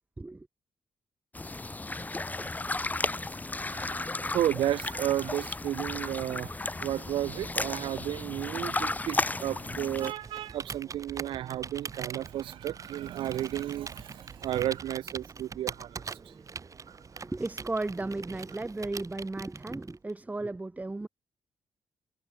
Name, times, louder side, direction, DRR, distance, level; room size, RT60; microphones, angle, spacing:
sound 1, 1.3-10.1, left 2 dB, 20° left, 0.9 m, -34 dB
voice 1, 4.3-6.5 6.8-15.9, right 12 dB, 80° right, 0.5 m, -32 dB
Computer keyboard, 9.8-20.1, right 5 dB, 40° right, 1.5 m, -43 dB
voice 2, 17.2-21.1, right 2 dB, 15° right, 1.0 m, -35 dB
cardioid pair, 70°, 9 cm